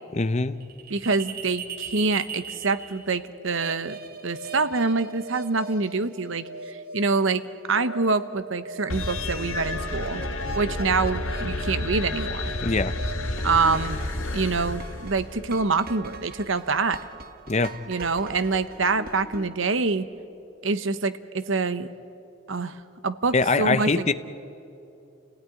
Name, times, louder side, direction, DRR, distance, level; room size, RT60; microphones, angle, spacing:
voice 1, 0.1-0.6 12.6-12.9 17.5-17.7 23.3-24.1, left 3 dB, 30° left, 13 dB, 0.7 m, -23 dB
sound 1, 0.6-19.5, right 3 dB, 45° right, 1.4 m, -40 dB
voice 2, 0.9-4.0 4.2-7.4 7.7-10.2 10.5-12.5 13.4-14.0 14.3-17.0 17.9-20.0 20.6-21.9 22.5-24.1, right 4 dB, 70° right, 12 dB, 1.0 m, -26 dB
sound 2, 8.9-15.5, left 2 dB, 75° left, 1.7 m, -31 dB
30.0 x 17.5 x 9.9 m, 2.9 s
head